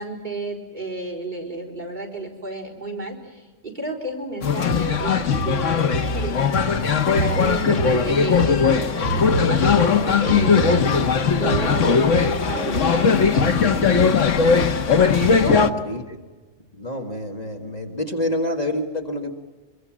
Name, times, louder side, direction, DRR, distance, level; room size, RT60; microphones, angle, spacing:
voice 1, 0.0-6.7 7.2-10.9 11.4-14.0 15.3-15.7, right 2 dB, 40° right, -1 dB, 4.2 m, -32 dB
sound 1, 4.4-15.7, left 5 dB, 85° left, 1.6 m, -19 dB
voice 2, 8.0-8.4 15.4-16.2 16.7-19.3, left 1 dB, 35° left, 3 dB, 1.9 m, -28 dB
25.0 x 23.0 x 7.4 m, 1.3 s
omnidirectional pair, 1.2 m